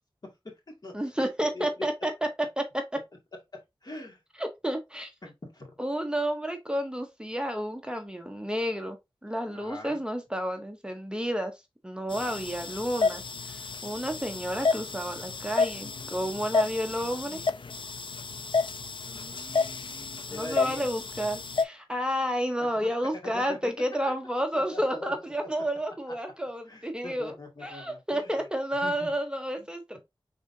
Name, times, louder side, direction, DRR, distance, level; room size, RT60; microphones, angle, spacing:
voice 1, 0.9-2.1 2.4-3.0 4.4-5.1 5.8-9.0 9.2-11.5 11.8-17.4 20.3-30.0, equal, 10° right, 0.8 m, -31 dB
voice 2, 1.5-1.8 3.8-4.2 5.2-5.7 9.5-10.0 12.1-12.4 19.0-20.9 22.6-22.7 23.2-23.7 24.5-25.1 26.7-28.3 28.8-29.1 29.6-29.7, left 2 dB, 45° left, 1.9 m, -42 dB
sound 1, 12.1-21.6, left 4 dB, 65° left, 0.5 m, -31 dB
5.4 x 3.7 x 2.6 m
wide cardioid pair, 65°, 9 cm